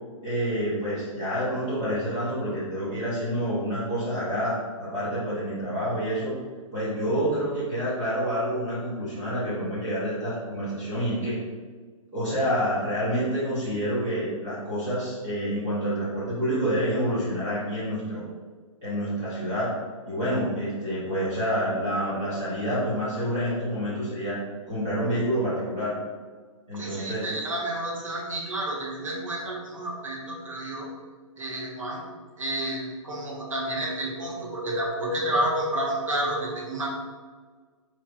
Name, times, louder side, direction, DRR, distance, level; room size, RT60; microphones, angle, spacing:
voice 1, 0.2-4.5 4.8-6.4 6.7-11.4 12.1-18.2 18.8-19.7 20.1-24.4 24.7-25.9 26.7-27.3, equal, 10° right, -11 dB, 0.5 m, -28 dB
voice 2, 26.7-30.9 31.4-32.0 32.4-36.9, right 1 dB, 65° right, -2 dB, 1.3 m, -30 dB
4.3 x 4.2 x 2.5 m, 1.5 s
hypercardioid pair, 180°, 18 cm